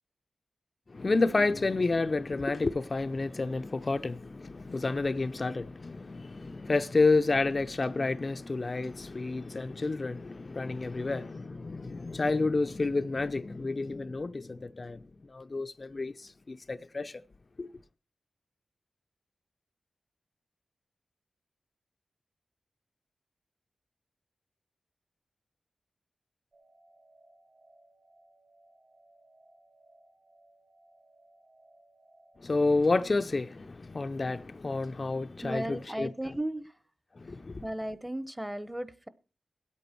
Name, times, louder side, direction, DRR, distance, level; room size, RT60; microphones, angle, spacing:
voice 1, 0.9-17.2 17.6-17.7 32.4-36.4 37.2-37.6, left 3 dB, 45° left, 0.5 m, -30 dB
sound 1, 26.5-33.3, right 2 dB, 55° right, 3.7 m, -62 dB
voice 2, 35.4-36.6 37.6-39.1, right 1 dB, 10° right, 0.9 m, -35 dB
19.0 x 8.4 x 4.5 m
wide cardioid pair, 75°, 0 cm